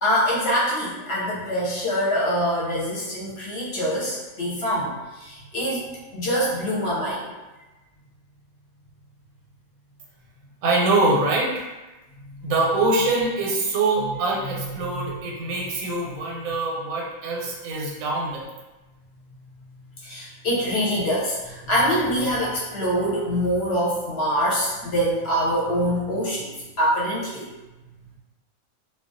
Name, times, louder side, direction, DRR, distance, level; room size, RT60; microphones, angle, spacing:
voice 1, 0.0-5.9 6.1-7.3 12.4-12.5 14.4-14.5 14.8-15.2 20.0-27.5, equal, 60° left, -6 dB, 0.8 m, -24 dB
voice 2, 10.6-11.7 12.4-18.5, right 2 dB, 90° right, -2 dB, 1.0 m, -24 dB
2.2 x 2.2 x 2.5 m, 1.1 s
omnidirectional pair, 1.4 m